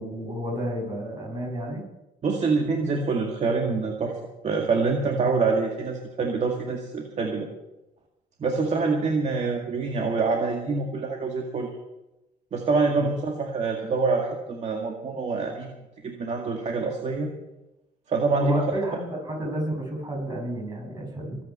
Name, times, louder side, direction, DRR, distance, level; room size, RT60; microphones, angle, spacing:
voice 1, 0.0-1.8 13.0-13.1 18.4-21.4, right 1 dB, 25° right, 1 dB, 6.3 m, -31 dB
voice 2, 2.2-4.2 4.4-7.5 8.4-11.7 12.5-15.7 16.0-17.3 18.1-18.7, right 4 dB, 40° right, 2 dB, 2.1 m, -25 dB
22.5 x 9.5 x 5.7 m, 0.98 s
cardioid pair, 110°, 17 cm